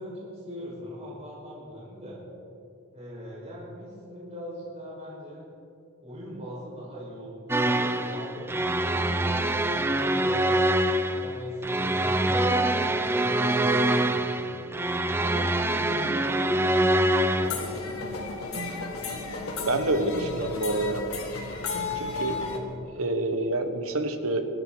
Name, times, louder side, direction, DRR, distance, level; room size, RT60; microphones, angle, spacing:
voice 1, 0.0-2.2 2.9-5.4 6.0-8.6 9.1-14.5 15.2-18.0 22.4-22.8, equal, 30° right, -6 dB, 4.9 m, -40 dB
sound 1, 7.5-17.5, right 1 dB, 10° right, 0.5 m, -25 dB
sound 2, 17.4-22.6, left 3 dB, 70° left, 2.1 m, -33 dB
voice 2, 19.7-21.0 22.0-22.4 22.8-24.5, right 2 dB, 65° right, 7 dB, 1.3 m, -27 dB
26.5 x 12.5 x 4.0 m, 2.6 s
head